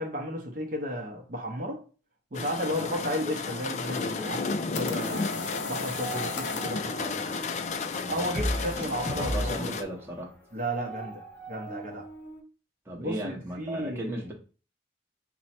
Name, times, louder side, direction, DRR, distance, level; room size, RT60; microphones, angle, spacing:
voice 1, 0.0-1.8 2.3-5.3 5.7-7.2 8.1-9.8 10.5-12.1 13.0-14.2, equal, 50° right, 0.6 m, -34 dB
sound 1, 2.3-9.8, left 4 dB, 40° left, 0.3 m, -33 dB
sound 2, 4.5-6.8, left 3 dB, 90° left, 0.5 m, -37 dB
sound 3, 4.8-5.6 5.8-7.5 8.3-12.4, right 1 dB, 15° left, 1.0 m, -37 dB
voice 2, 8.0-8.5 9.1-10.3 12.9-14.3, equal, 15° right, 0.7 m, -36 dB
4.5 x 2.0 x 4.2 m
head